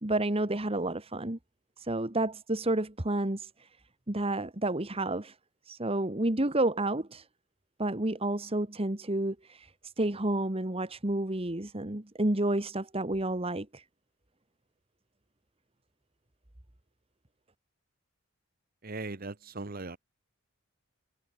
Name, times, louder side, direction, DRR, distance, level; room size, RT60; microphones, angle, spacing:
voice 1, 0.0-1.4 1.8-3.5 4.1-5.3 5.7-7.2 7.8-9.7 10.0-13.8, right 1 dB, 25° right, 1.6 m, -30 dB
voice 2, 18.8-20.0, right 3 dB, 45° right, 1.2 m, -39 dB
head